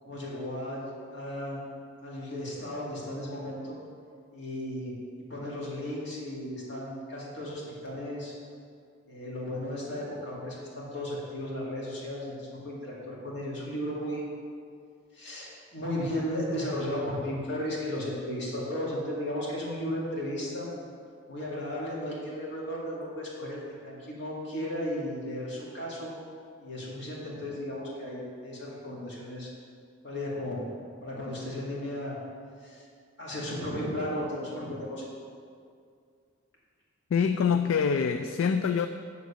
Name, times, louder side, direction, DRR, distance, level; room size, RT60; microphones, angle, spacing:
voice 1, 0.0-1.7 2.0-3.8 4.3-4.9 5.3-8.3 9.1-14.2 15.1-20.7 21.3-26.1 26.6-29.5 30.0-30.6 31.0-32.2 32.6-32.8 33.2-35.0, left 1 dB, 60° left, -6 dB, 2.2 m, -35 dB
voice 2, 37.1-38.9, left 6 dB, 75° left, 8 dB, 0.3 m, -25 dB
9.4 x 4.0 x 6.7 m, 2.3 s
head